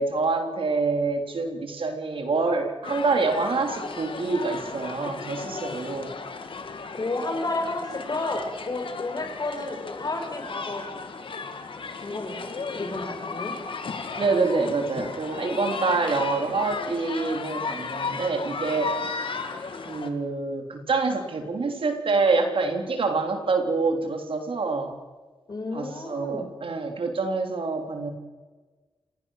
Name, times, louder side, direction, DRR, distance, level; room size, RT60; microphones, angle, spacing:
voice 1, 0.0-6.1 14.2-19.0 19.7-24.9 25.7-28.1, right 3 dB, 75° right, 5 dB, 3.4 m, -26 dB
sound 1, 2.8-20.1, left 4 dB, 70° left, 2.3 m, -35 dB
voice 2, 6.9-10.9 12.0-13.6 25.5-26.6, left 2 dB, 45° left, 5 dB, 5.0 m, -31 dB
28.5 x 16.5 x 6.5 m, 1.3 s
wide cardioid pair, 90°, 9 cm